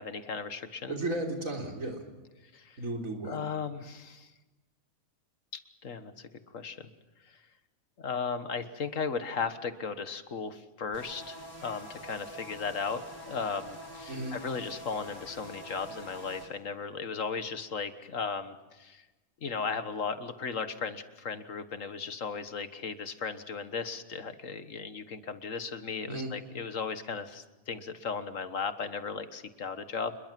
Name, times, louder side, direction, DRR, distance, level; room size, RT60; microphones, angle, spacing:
voice 1, 0.0-1.0 2.5-2.8 3.3-4.3 5.5-6.9 7.2-7.4 8.0-13.0 13.3-19.0 19.4-30.2, left 5 dB, 65° left, 11 dB, 1.8 m, -36 dB
voice 2, 0.9-2.0 2.8-3.4 14.1-14.4 26.1-26.3, right 2 dB, 70° right, 2 dB, 4.1 m, -34 dB
sound 1, 10.9-16.5, equal, 85° left, 6.1 m, -46 dB
28.0 x 21.5 x 7.6 m, 1.1 s
omnidirectional pair, 1.5 m